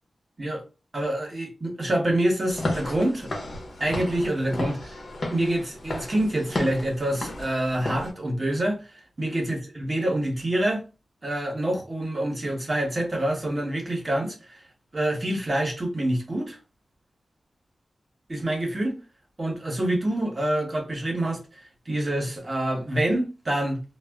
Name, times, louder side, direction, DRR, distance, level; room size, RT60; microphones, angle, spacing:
voice 1, 0.9-3.3 3.8-5.0 5.3-10.8 11.2-14.6 14.9-16.6 18.3-19.0 19.4-23.8, right 1 dB, 45° right, 1.0 m, -26 dB
Walk footsteps / Siren, 2.5-8.1, left 1 dB, 65° left, 0.8 m, -33 dB
2.1 x 2.0 x 3.4 m
cardioid pair, 45°, 0 cm